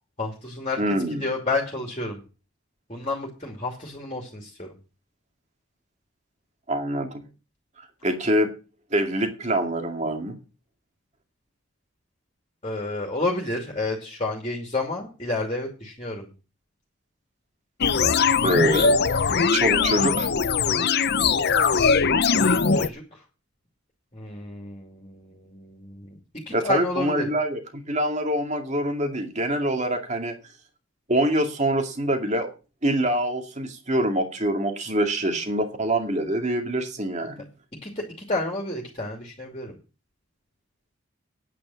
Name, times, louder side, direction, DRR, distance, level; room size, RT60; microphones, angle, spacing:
voice 1, 0.2-0.8 1.2-2.2 2.9-4.8 12.6-16.3 22.3-23.2 24.1-26.2 26.5-27.3 37.8-39.8, left 2 dB, 25° left, 1 dB, 2.6 m, -30 dB
voice 2, 0.8-1.2 6.7-7.2 8.0-8.5 8.9-10.3 18.4-19.2 19.5-20.3 26.5-30.3 31.1-32.5 32.8-37.4, right 1 dB, 35° right, 5 dB, 2.3 m, -25 dB
sound 1, 17.8-22.9, left 5 dB, 50° left, 0.6 m, -21 dB
9.6 x 8.8 x 7.1 m, 0.32 s
head